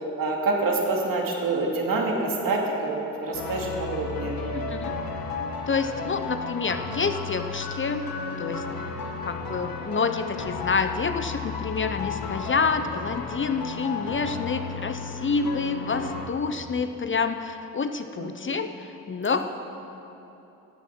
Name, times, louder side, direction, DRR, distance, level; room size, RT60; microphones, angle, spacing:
voice 1, 0.2-4.4 18.2-18.6 19.3-19.4, right 3 dB, 65° right, -1 dB, 2.4 m, -27 dB
sound 1, 3.3-16.3, left 4 dB, 70° left, 1.4 m, -33 dB
voice 2, 4.5-4.9 5.7-8.1 8.4-8.6 9.3-19.4, left 5 dB, 35° left, 9 dB, 0.7 m, -28 dB
14.5 x 8.3 x 6.1 m, 2.9 s
supercardioid pair, 60°, 37 cm